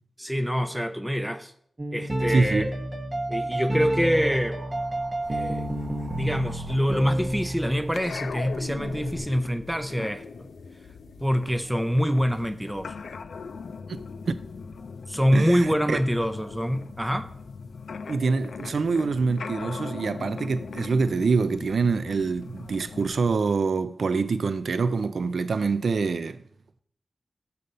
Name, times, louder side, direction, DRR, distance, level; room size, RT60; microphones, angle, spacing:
voice 1, 0.2-1.5 1.9-2.7 3.3-4.6 5.3-5.7 6.2-10.5 11.2-12.9 15.1-17.3, equal, 5° right, 0.5 m, -25 dB
sound 1, 1.8-7.8, right 1 dB, 30° right, 0.9 m, -29 dB
voice 2, 2.3-2.7 14.3-14.4 15.3-16.0 18.1-26.4, right 4 dB, 75° right, 0.3 m, -25 dB
sound 2, 3.9-9.2, right 1 dB, 60° right, 1.7 m, -46 dB
sound 3, 5.2-23.4, left 5 dB, 85° left, 0.3 m, -40 dB
6.7 x 4.1 x 6.5 m
wide cardioid pair, 75°, 0 cm